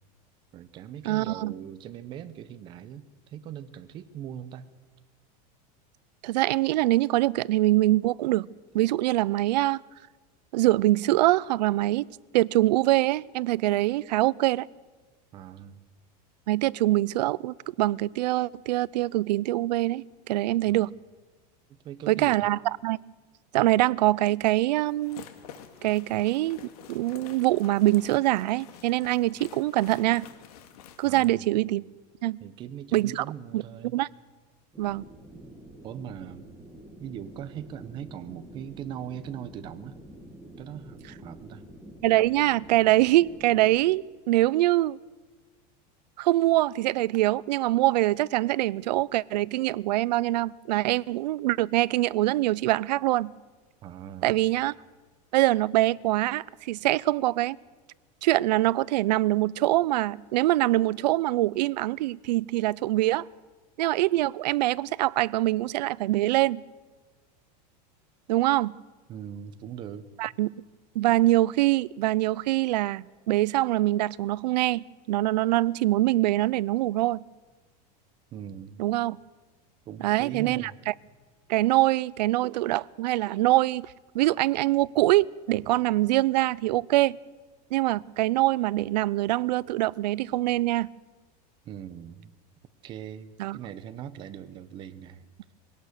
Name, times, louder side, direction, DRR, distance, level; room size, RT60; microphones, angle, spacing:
voice 1, 0.5-4.7 15.3-15.8 20.7-20.9 21.7-22.5 31.0-31.5 32.4-34.0 35.8-36.5 37.0-39.9 40.6-41.6 53.8-54.4 69.1-70.1 78.3-78.8 79.9-80.8 91.6-92.3 92.8-95.3, right 9 dB, 20° right, 0.8 m, -40 dB
voice 2, 1.0-1.5 6.2-8.5 8.7-9.8 10.5-12.1 12.3-14.7 16.5-20.9 22.1-23.0 23.5-25.2 25.8-26.6 26.9-30.3 31.0-31.8 32.2-32.4 32.9-33.2 33.5-33.6 33.9-34.1 34.8-35.1 42.0-45.0 46.2-53.3 54.2-54.7 55.3-57.6 58.2-63.3 63.8-66.6 68.3-68.7 70.2-70.5 70.9-77.2 78.8-79.2 80.0-80.9 81.5-83.9 84.1-87.2 87.7-90.9 93.4-93.6, right 17 dB, 90° right, 0.6 m, -24 dB
sound 1, 24.9-31.3, left 9 dB, 65° left, 2.1 m, -48 dB
sound 2, 34.7-43.8, right 1 dB, 5° right, 1.8 m, -48 dB
22.0 x 18.0 x 6.7 m
supercardioid pair, 180°, 21 cm